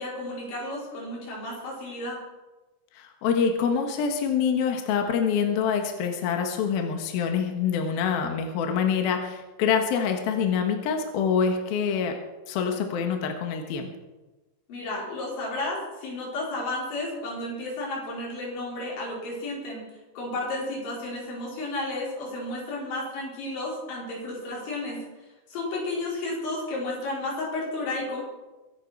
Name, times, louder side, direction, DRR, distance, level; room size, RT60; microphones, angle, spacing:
voice 1, 0.0-2.2 14.7-19.8 20.2-25.1 25.5-28.2, left 2 dB, 90° left, -4 dB, 8.0 m, -32 dB
voice 2, 2.9-12.2 12.5-13.9, left 6 dB, 65° left, 4 dB, 3.0 m, -26 dB
23.5 x 11.0 x 4.6 m, 1.1 s
omnidirectional pair, 5.2 m